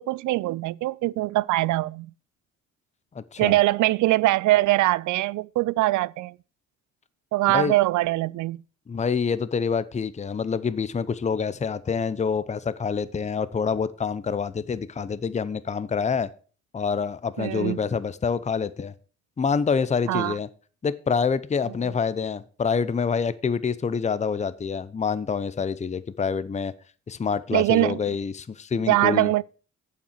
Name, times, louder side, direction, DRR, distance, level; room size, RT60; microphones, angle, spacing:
voice 1, 0.0-2.1 3.4-6.3 7.3-8.6 17.4-17.8 20.1-20.4 21.8-21.9 27.5-28.0 28.9-29.4, right 17 dB, 75° right, 0.4 m, -22 dB
voice 2, 3.1-3.6 7.5-7.7 8.9-16.3 16.7-18.9 19.4-20.5 20.8-26.7 27.1-29.3, left 6 dB, 25° left, 0.7 m, -26 dB
8.4 x 7.5 x 5.9 m
cardioid pair, 90°, 30 cm